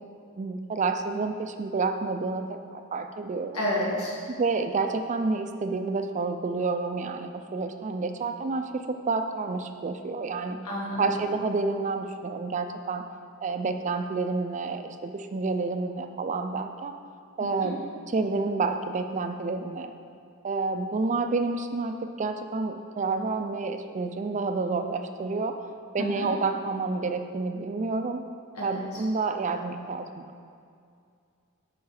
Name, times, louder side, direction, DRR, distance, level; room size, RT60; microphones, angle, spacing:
voice 1, 0.4-2.4 2.7-3.6 4.3-10.6 11.0-13.0 13.4-17.0 17.4-17.8 18.1-19.9 20.4-25.6 25.9-28.2 28.6-30.3, right 3 dB, 35° right, 7 dB, 0.4 m, -29 dB
voice 2, 3.5-4.2 10.6-11.2 17.4-17.7 26.0-26.3 28.5-29.0, left 1 dB, 85° left, -5 dB, 2.1 m, -31 dB
8.1 x 5.2 x 4.8 m, 2.3 s
head